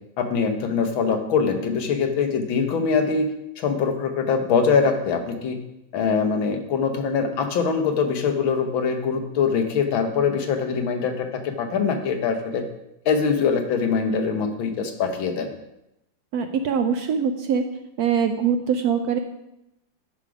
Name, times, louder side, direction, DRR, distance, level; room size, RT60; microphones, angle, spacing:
voice 1, 0.2-3.3 3.6-5.6 5.9-12.6 13.1-15.5, left 5 dB, 90° left, 6 dB, 1.9 m, -23 dB
voice 2, 16.3-17.6 18.0-19.2, right 7 dB, 70° right, 7 dB, 0.9 m, -23 dB
12.0 x 5.2 x 4.9 m, 0.86 s
omnidirectional pair, 2.1 m